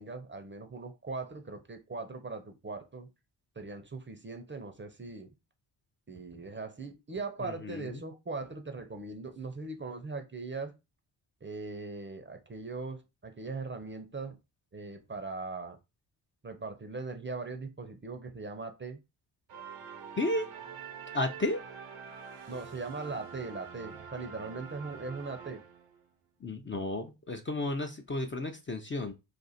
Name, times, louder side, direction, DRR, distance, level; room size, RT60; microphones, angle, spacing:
voice 1, 0.0-3.1 3.6-5.3 6.1-10.7 11.4-14.4 14.7-15.8 16.4-19.0 22.5-25.6, right 3 dB, 25° right, 0.7 m, -40 dB
voice 2, 7.4-8.0 20.2-20.5 21.1-21.6 26.4-29.1, left 2 dB, 25° left, 0.6 m, -33 dB
sound 1, 19.5-26.1, right 6 dB, 80° right, 0.9 m, -46 dB
2.5 x 2.4 x 4.1 m
hypercardioid pair, 40°, 50 cm